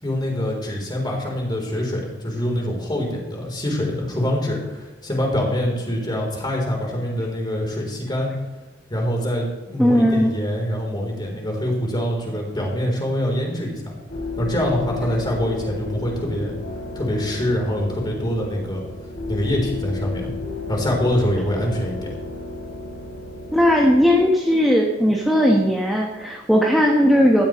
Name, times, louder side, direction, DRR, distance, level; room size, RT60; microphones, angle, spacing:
voice 1, 0.0-8.3 8.9-14.0 14.4-16.5 17.0-18.8 19.3-20.3 20.7-22.1, equal, 25° left, 0 dB, 3.8 m, -24 dB
voice 2, 9.8-10.3 23.5-27.4, equal, ahead, -1 dB, 1.4 m, -17 dB
sound 1, 14.1-24.2, left 3 dB, 65° left, 3.4 m, -33 dB
15.5 x 13.0 x 3.2 m, 1.2 s
head